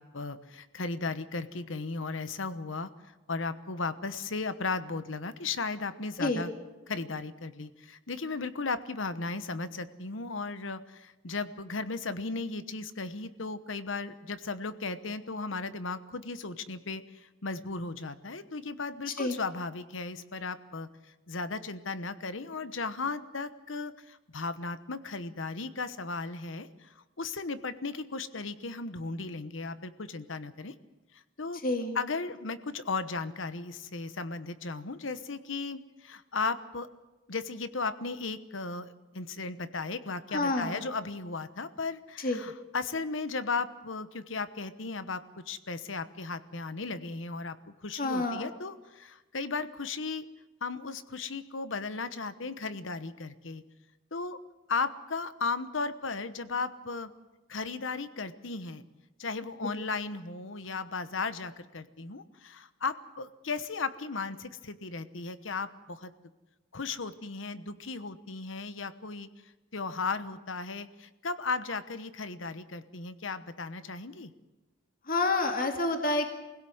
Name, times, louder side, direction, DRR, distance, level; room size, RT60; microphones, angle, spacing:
voice 1, 0.0-6.5 6.9-20.9 21.3-30.7 31.1-31.6 31.9-36.9 37.3-50.2 50.6-53.6 54.1-54.4 54.7-57.1 57.5-58.8 59.2-66.1 66.7-69.3 69.7-74.3, left 4 dB, 70° left, 12 dB, 1.1 m, -36 dB
voice 2, 31.6-32.0 40.3-40.8 42.2-42.4 48.0-48.5 59.6-59.7 75.1-76.3, left 2 dB, 45° left, 4 dB, 2.2 m, -28 dB
24.0 x 16.5 x 7.9 m, 1.1 s
head